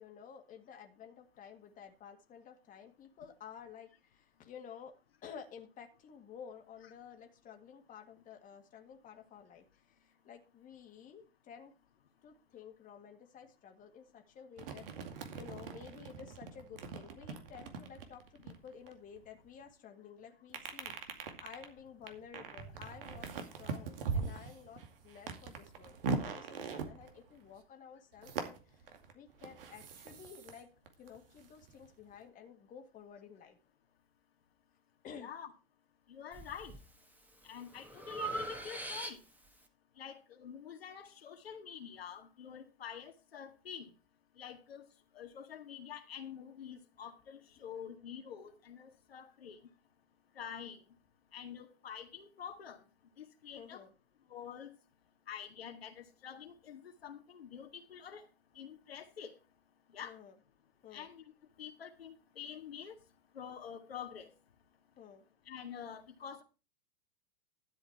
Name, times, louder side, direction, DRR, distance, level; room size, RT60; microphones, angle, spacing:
voice 1, 0.0-4.9 5.2-11.7 12.2-14.9 15.3-28.8 29.1-30.7 31.0-33.6 35.0-35.3 53.5-53.9 60.0-60.4 60.8-61.1 65.0-65.2, left 7 dB, 25° left, 4 dB, 1.9 m, -53 dB
sound 1, 14.6-19.5 20.5-27.6 28.2-30.6 30.9-32.1, right 5 dB, 65° right, 2.4 m, -41 dB
voice 2, 35.2-35.5 36.1-36.7 37.4-39.2 40.0-43.9 44.4-44.9 45.2-49.6 50.4-50.8 51.3-52.8 53.2-53.8 54.3-54.7 55.3-58.2 58.6-59.4 59.9-60.1 60.9-61.2 61.6-63.0 63.3-64.3 65.5-66.4, left 8 dB, 75° left, 4 dB, 1.9 m, -47 dB
Breathing, 36.3-36.8 37.3-39.5, right 2 dB, 5° right, 1.8 m, -42 dB
12.5 x 7.9 x 4.6 m, 0.32 s
hypercardioid pair, 105°, 30 cm